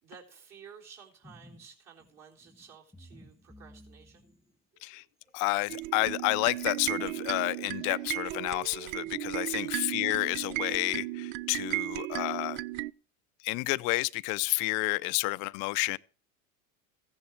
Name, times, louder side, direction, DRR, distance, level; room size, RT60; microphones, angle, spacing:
voice 1, 0.0-4.2 9.4-9.7, right 6 dB, 40° right, 3.7 m, -53 dB
sound 1, 1.2-1.7 2.0-8.9, left 1 dB, ahead, 1.4 m, -57 dB
voice 2, 5.3-12.6 13.4-16.0, left 25 dB, 50° left, 0.6 m, -30 dB
sound 2, 5.7-12.9, right 18 dB, 60° right, 0.5 m, -35 dB
15.0 x 10.5 x 4.6 m
supercardioid pair, 120°, 39 cm